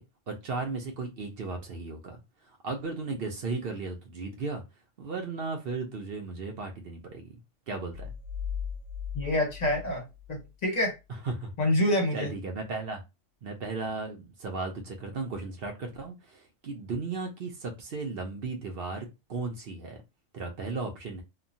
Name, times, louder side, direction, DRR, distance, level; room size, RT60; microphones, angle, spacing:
voice 1, 0.0-2.2 2.6-4.6 5.0-7.3 7.7-8.1 11.2-11.5 12.1-13.0 13.4-20.0 20.3-21.2, right 3 dB, 55° right, 0.7 m, -35 dB
sound 1, 7.9-10.5, left 7 dB, 80° right, 1.0 m, -38 dB
voice 2, 9.1-11.0 11.6-12.3, left 1 dB, 40° left, 0.8 m, -27 dB
3.0 x 2.2 x 2.6 m
omnidirectional pair, 1.3 m